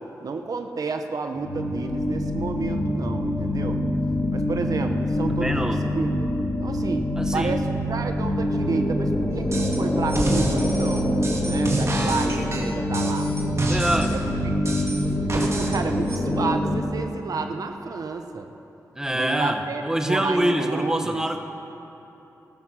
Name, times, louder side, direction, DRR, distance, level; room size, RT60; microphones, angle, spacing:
voice 1, 0.0-3.8 4.3-6.3 6.6-7.0 7.3-11.1 11.5-13.3 14.1-14.2 15.0-18.5 19.1-21.2, right 4 dB, 65° right, 6 dB, 0.9 m, -31 dB
sound 1, 1.3-16.8, left 1 dB, 45° left, 4.0 m, -25 dB
voice 2, 5.4-5.8 7.2-7.6 13.7-14.2 18.9-21.4, right 1 dB, 10° right, 5 dB, 1.3 m, -25 dB
sound 2, 9.5-9.8 10.1-14.2 14.6-15.8 16.1-16.2, right 2 dB, 45° right, 2.3 m, -29 dB
15.5 x 13.5 x 6.3 m, 2.9 s
cardioid pair, 70°, 7 cm